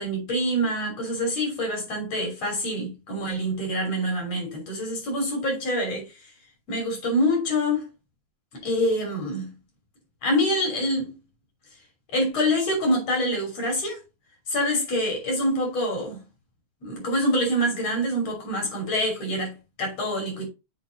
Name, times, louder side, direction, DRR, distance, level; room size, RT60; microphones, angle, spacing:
voice 1, 0.0-6.1 6.7-7.9 8.6-9.5 10.2-11.1 12.1-14.0 14.5-16.2 16.8-20.5, equal, 60° left, 4.2 m, -26 dB
7.5 x 4.1 x 3.9 m
omnidirectional pair, 3.3 m